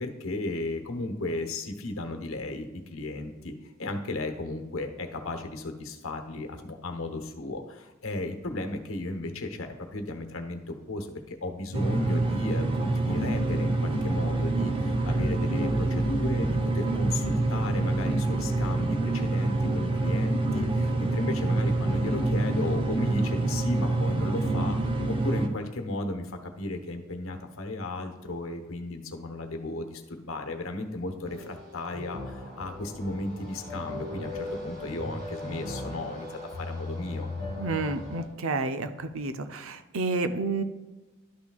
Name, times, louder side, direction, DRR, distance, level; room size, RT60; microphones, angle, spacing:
voice 1, 0.0-3.5 3.8-37.3, left 2 dB, 70° left, 6 dB, 1.0 m, -35 dB
sound 1, 11.7-25.5, right 2 dB, 25° right, 0.7 m, -26 dB
sound 2, 31.2-38.2, left 2 dB, 50° right, 1.9 m, -38 dB
voice 2, 37.6-40.6, right 3 dB, 75° right, 9 dB, 0.6 m, -30 dB
12.0 x 6.0 x 2.3 m, 1.2 s
head